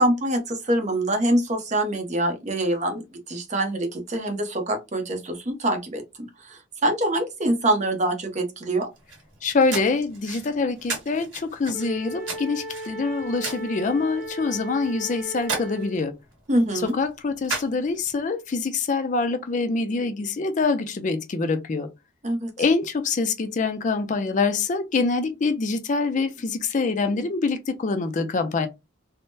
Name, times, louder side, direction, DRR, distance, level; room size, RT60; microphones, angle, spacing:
voice 1, 0.0-8.9 16.5-16.9 22.2-22.5, right 1 dB, 40° right, 0.7 m, -25 dB
sound 1, 8.9-18.2, right 4 dB, 85° right, 1.7 m, -37 dB
voice 2, 9.4-16.1 17.0-21.9 22.6-28.7, left 4 dB, 40° left, 0.4 m, -25 dB
Wind instrument woodwind instrument, 11.7-16.1, right 1 dB, ahead, 0.7 m, -36 dB
3.5 x 2.0 x 2.6 m
head